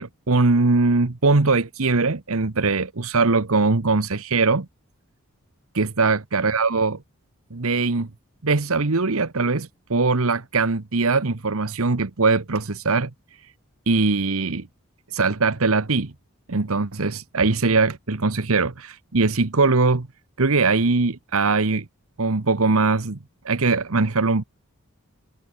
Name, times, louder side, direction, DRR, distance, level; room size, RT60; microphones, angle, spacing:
voice 1, 0.0-4.7 5.7-7.0 7.5-8.1 8.4-13.1 13.9-14.7 15.1-16.1 16.5-20.1 20.4-21.8 22.2-23.2 23.4-24.4, right 3 dB, 75° right, 1.2 m, -21 dB
head